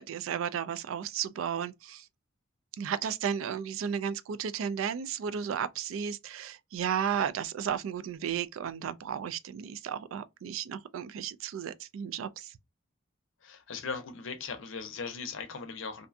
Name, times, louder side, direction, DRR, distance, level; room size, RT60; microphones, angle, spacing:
voice 1, 0.0-2.1 2.8-12.5, right 8 dB, 80° right, 0.3 m, -34 dB
voice 2, 13.4-16.1, left 5 dB, 70° left, 0.5 m, -38 dB
2.6 x 2.2 x 2.4 m
head